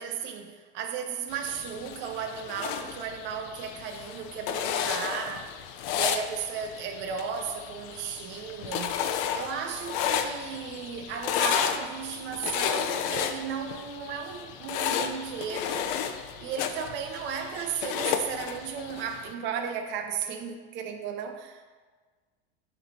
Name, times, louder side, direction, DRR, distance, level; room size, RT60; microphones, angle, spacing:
voice 1, 0.0-5.6 5.9-9.0 9.3-15.9 16.4-21.7, right 7 dB, 40° right, 0.6 m, -35 dB
sound 1, 1.3-19.3, left 8 dB, 60° left, 0.6 m, -33 dB
9.2 x 3.3 x 4.1 m
supercardioid pair, 145°, 30 cm